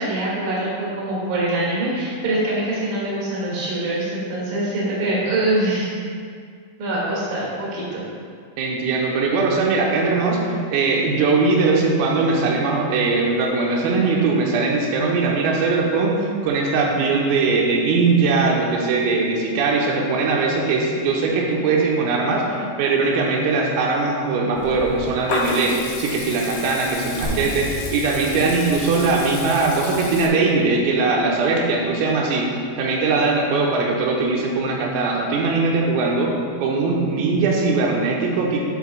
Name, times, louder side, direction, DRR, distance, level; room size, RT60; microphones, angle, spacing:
voice 1, 0.0-5.9 6.8-8.0, right 1 dB, 55° right, -6 dB, 2.9 m, -24 dB
voice 2, 8.6-32.5 32.8-36.3 36.6-38.6, right 3 dB, 90° right, -2 dB, 3.5 m, -20 dB
Water tap faucet / Liquid, 24.6-30.3, left 4 dB, 90° left, 2.4 m, -32 dB
sound 1, 27.2-31.3, right 1 dB, 70° right, 3.1 m, -34 dB
11.5 x 7.2 x 2.2 m, 2.1 s
omnidirectional pair, 5.9 m